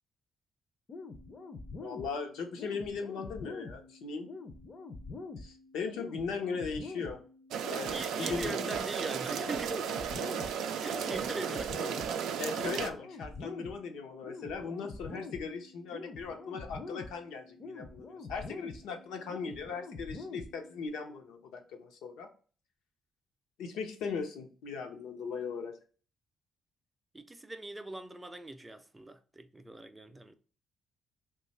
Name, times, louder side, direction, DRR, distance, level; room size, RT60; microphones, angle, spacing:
sound 1, 0.9-20.9, left 3 dB, 40° left, 0.5 m, -46 dB
voice 1, 1.8-4.3 5.4-7.2 7.7-8.6 12.4-22.3 23.6-25.8, left 5 dB, 90° left, 0.7 m, -38 dB
sound 2, 7.5-12.9, right 7 dB, 85° right, 0.3 m, -34 dB
voice 2, 7.9-9.9 10.8-12.1 27.1-30.3, right 2 dB, 15° right, 0.4 m, -41 dB
3.0 x 2.3 x 4.1 m
cardioid pair, 90°, 0 cm